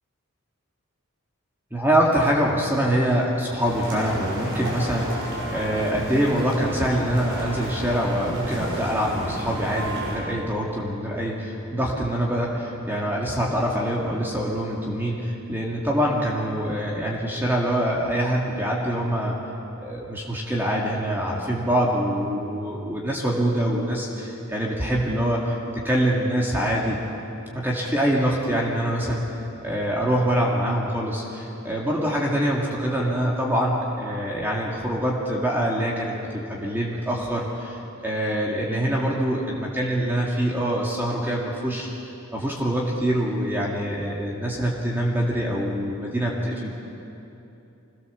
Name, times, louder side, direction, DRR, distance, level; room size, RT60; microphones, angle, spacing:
voice 1, 1.7-19.4 19.8-27.0 27.5-41.9 42.3-46.7, equal, 10° right, -3 dB, 2.2 m, -25 dB
sound 1, 3.6-10.2, right 1 dB, 55° right, 6.1 m, -32 dB
25.0 x 17.5 x 7.2 m, 2.9 s
head